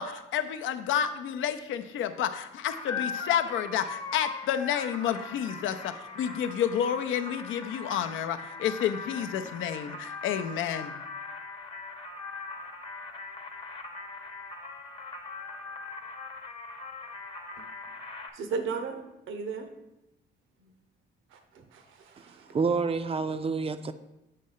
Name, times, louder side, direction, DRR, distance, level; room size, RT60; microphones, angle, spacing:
voice 1, 0.0-11.0, left 9 dB, 80° left, 8 dB, 0.5 m, -30 dB
sound 1, 2.7-18.3, left 4 dB, 25° left, 0.8 m, -40 dB
voice 2, 18.3-19.0 19.3-19.7 21.3-22.5, right 5 dB, 85° right, 6 dB, 0.8 m, -36 dB
voice 3, 22.5-23.9, right 4 dB, 30° right, 11 dB, 0.4 m, -28 dB
7.5 x 3.2 x 5.5 m, 0.91 s
cardioid pair, 90°, 20 cm